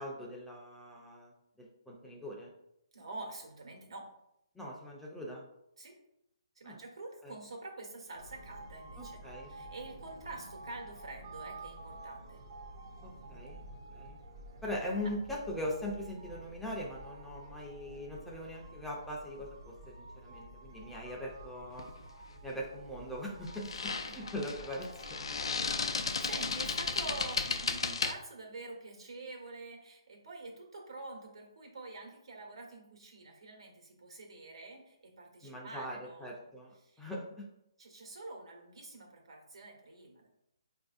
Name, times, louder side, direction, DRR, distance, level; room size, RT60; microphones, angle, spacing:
voice 1, 0.0-1.3 1.6-2.5 4.6-5.4 6.6-6.8 7.2-7.3 9.0-9.5 13.0-13.6 13.9-14.2 14.6-21.9 22.4-25.2 35.4-37.5, left 1 dB, 5° left, -3 dB, 0.5 m, -41 dB
voice 2, 2.9-4.1 5.8-5.9 6.5-12.4 24.0-24.3 25.5-36.5 36.8-37.0 37.8-40.3, right 2 dB, 80° right, 1 dB, 1.2 m, -47 dB
sound 1, 8.1-27.7, right 2 dB, 55° right, 0.7 m, -50 dB
sound 2, 21.8-22.0 23.5-28.1, left 4 dB, 75° left, 0.4 m, -34 dB
4.6 x 2.6 x 2.4 m, 0.79 s
hypercardioid pair, 155°, 3 cm